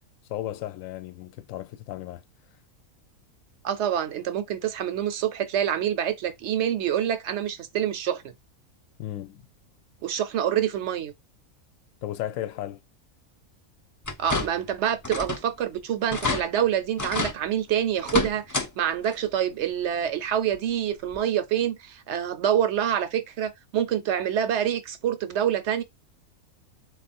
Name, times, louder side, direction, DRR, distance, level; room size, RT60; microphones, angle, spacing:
voice 1, 0.3-2.2 9.0-9.4 12.0-12.8, left 13 dB, 70° left, 1.0 m, -34 dB
voice 2, 3.6-8.3 10.0-11.1 14.2-25.8, right 10 dB, 60° right, 0.9 m, -26 dB
sound 1, 14.0-14.7 15.0-15.5 15.8-15.9 16.1-16.4 17.0-17.4 18.0-18.7 19.0-19.1 20.5-20.6 21.1-21.2, left 3 dB, 25° left, 0.4 m, -28 dB
3.9 x 2.4 x 4.2 m
omnidirectional pair, 1.5 m